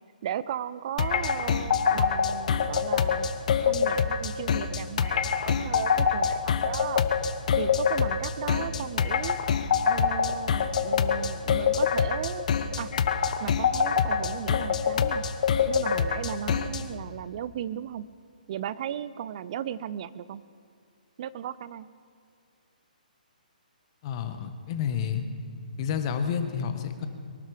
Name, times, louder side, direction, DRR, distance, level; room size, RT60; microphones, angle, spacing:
voice 1, 0.2-7.1 7.6-9.4 9.9-12.5 12.8-12.9 13.4-15.2 15.7-18.1 18.5-20.4 21.2-21.9, right 10 dB, 45° right, 17 dB, 0.5 m, -36 dB
sound 1, 1.0-16.9, left 6 dB, 55° left, 1.1 m, -25 dB
voice 2, 24.0-25.2 25.8-27.1, left 7 dB, 40° left, 7 dB, 1.6 m, -30 dB
23.0 x 12.0 x 5.0 m, 2.4 s
hypercardioid pair, 135°, 5 cm